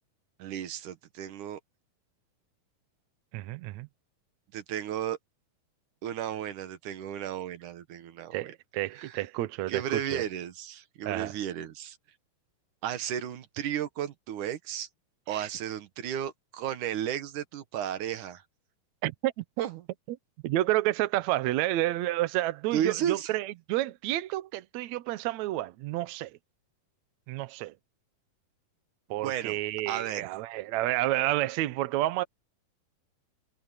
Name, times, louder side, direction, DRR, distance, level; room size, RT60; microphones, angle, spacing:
voice 1, 0.4-1.6 4.5-5.2 6.0-8.5 8.9-9.2 9.7-12.0 12.8-14.9 15.3-18.4 19.6-19.8 22.7-23.3 29.2-29.6 29.9-30.3, right 10 dB, 65° right, 2.6 m, -34 dB
voice 2, 3.3-3.9 8.3-10.2 11.1-11.3 15.3-15.5 19.0-19.4 20.4-26.4 27.3-27.7 29.1-32.2, right 16 dB, 80° right, 1.6 m, -30 dB
omnidirectional pair, 4.2 m